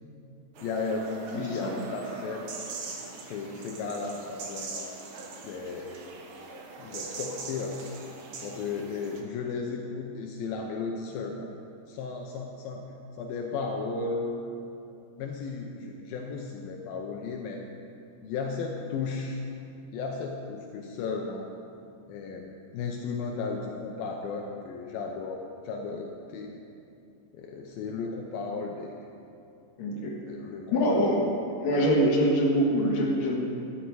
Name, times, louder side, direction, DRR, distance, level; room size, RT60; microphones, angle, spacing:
voice 1, 0.6-2.7 3.3-5.0 5.4-6.0 6.8-7.8 8.4-11.5 11.9-12.9 13.2-14.4 15.2-17.6 18.2-19.4 19.9-21.5 22.1-26.5 27.3-28.9 30.3-31.0, left 4 dB, 75° left, 1 dB, 2.5 m, -35 dB
sound 1, 0.6-9.2, right 3 dB, 85° right, 1.2 m, -41 dB
voice 2, 1.3-1.7 29.8-30.1 30.7-31.3 31.6-33.4, equal, 55° left, -2 dB, 2.6 m, -24 dB
13.0 x 10.5 x 4.7 m, 2.6 s
omnidirectional pair, 4.4 m